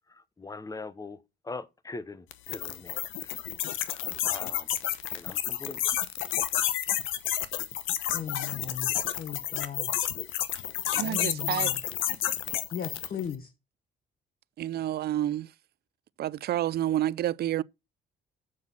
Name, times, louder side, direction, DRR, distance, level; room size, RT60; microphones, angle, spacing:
voice 1, 0.1-3.4 3.7-4.7 5.1-5.8, left 3 dB, 15° left, 0.9 m, -42 dB
sound 1, 2.3-13.2, left 12 dB, 90° left, 0.9 m, -30 dB
voice 2, 8.1-8.9 9.2-9.9 11.0-11.8 12.7-13.5, left 8 dB, 45° left, 1.2 m, -37 dB
voice 3, 10.9-11.8 14.6-15.5 16.2-17.6, right 13 dB, 55° right, 0.4 m, -29 dB
7.5 x 6.0 x 5.9 m
cardioid pair, 90°, 20 cm